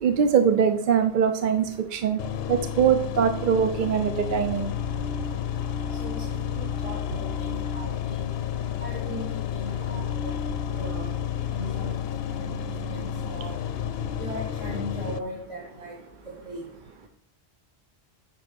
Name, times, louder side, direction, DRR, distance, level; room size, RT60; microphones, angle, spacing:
voice 1, 0.0-2.2 2.5-4.7, right 7 dB, 55° right, 9 dB, 0.6 m, -22 dB
sound 1, 2.2-15.2, left 8 dB, 70° left, 0.8 m, -31 dB
voice 2, 6.5-8.3 8.8-10.0 10.8-11.1 11.5-11.9 12.4-12.5 12.9-13.0 13.3-13.5 14.2-15.9 16.5-16.6, equal, 30° right, -3 dB, 1.8 m, -37 dB
9.3 x 5.8 x 5.2 m, 0.71 s
omnidirectional pair, 1.1 m